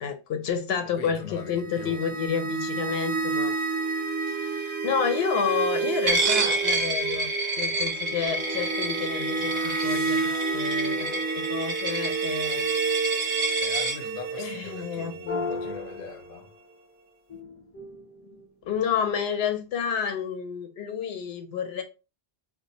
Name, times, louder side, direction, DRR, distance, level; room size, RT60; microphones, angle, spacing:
voice 1, 0.0-3.6 4.3-7.3 7.6-11.1 11.4-12.8 13.1-13.5 14.4-15.5 18.7-21.8, left 7 dB, 80° left, 0.8 m, -30 dB
voice 2, 1.0-2.0 13.6-16.5, left 5 dB, 50° left, 0.7 m, -41 dB
sound 1, 1.4-16.4, right 5 dB, 85° right, 1.0 m, -30 dB
Coin (dropping), 6.1-14.0, right 2 dB, 50° right, 0.7 m, -29 dB
sound 2, 8.3-12.4 15.3-16.8 17.3-19.1, left 2 dB, 15° left, 0.7 m, -38 dB
3.9 x 2.5 x 2.7 m
omnidirectional pair, 1.0 m